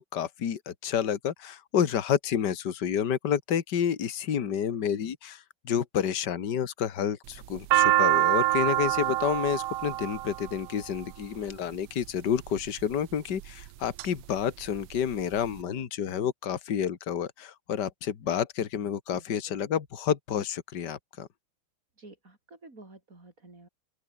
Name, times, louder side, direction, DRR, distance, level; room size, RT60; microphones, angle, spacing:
voice 1, 0.0-21.3, left 8 dB, 55° left, 2.2 m, -29 dB
sound 1, 7.3-11.5 12.3-12.8 13.4-14.1 14.4-14.5 14.7-15.5, right 16 dB, 80° right, 1.6 m, -25 dB
voice 2, 8.0-8.3 19.1-19.6 22.0-23.7, right 2 dB, 35° right, 5.4 m, -51 dB
open air
omnidirectional pair, 2.4 m